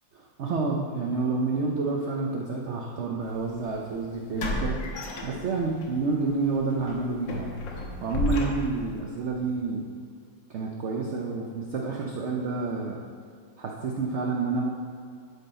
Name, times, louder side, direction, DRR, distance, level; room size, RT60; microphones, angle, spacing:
voice 1, 0.1-7.6 8.0-9.9 10.5-13.0 13.6-14.7, right 3 dB, 60° right, 0 dB, 0.7 m, -29 dB
sound 1, 3.3-3.4 4.4-5.9 6.2-6.4 6.9-9.0, left 2 dB, 80° left, 1.8 m, -32 dB
12.0 x 5.5 x 4.3 m, 2.2 s
omnidirectional pair, 2.0 m